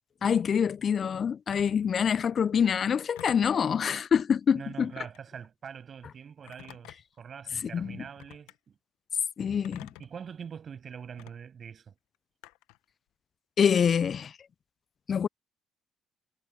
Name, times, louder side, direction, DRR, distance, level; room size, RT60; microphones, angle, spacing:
voice 1, 0.2-4.9 7.7-8.0 9.4-9.9 13.6-14.3 15.1-15.3, left 7 dB, 50° left, 0.3 m, -26 dB
Telephone, 1.5-1.8 3.2-3.7 4.9-5.3 6.5-7.2 8.2-8.6 9.6-10.2 11.2-11.3 12.4-12.8, left 20 dB, 85° left, 1.0 m, -49 dB
voice 2, 4.5-8.8 9.4-12.0, right 7 dB, 50° right, 7.0 m, -44 dB
supercardioid pair, 60°, 0 cm